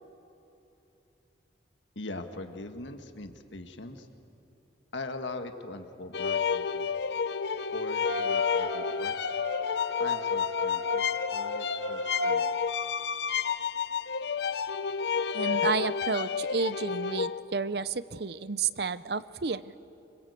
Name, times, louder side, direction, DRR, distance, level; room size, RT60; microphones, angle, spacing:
voice 1, 1.9-4.1 4.9-6.8 7.7-9.1 10.0-11.0 11.3-12.5, left 2 dB, 90° left, 6 dB, 1.7 m, -41 dB
sound 1, 6.1-17.4, left 6 dB, 70° left, 0.7 m, -30 dB
sound 2, 8.0-12.5, left 3 dB, 90° right, 2.6 m, -34 dB
voice 2, 15.3-19.7, right 4 dB, 60° right, 16 dB, 0.7 m, -31 dB
26.0 x 25.0 x 8.3 m, 3.0 s
head